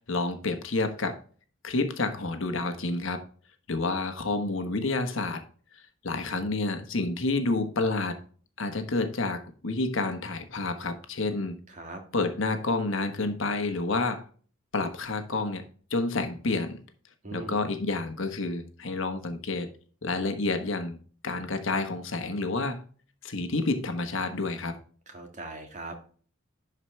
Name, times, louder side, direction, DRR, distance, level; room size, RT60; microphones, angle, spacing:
voice 1, 0.1-1.2 1.6-3.2 3.7-5.4 6.0-8.2 8.6-11.6 12.1-14.2 14.7-15.6 15.9-16.8 17.3-19.7 20.0-21.0 21.2-22.8 23.2-24.8, left 3 dB, 65° left, 7 dB, 1.2 m, -29 dB
voice 2, 11.7-12.0 17.2-17.7 25.1-26.0, right 2 dB, 35° right, 4 dB, 1.8 m, -40 dB
11.5 x 4.9 x 3.2 m, 0.43 s
head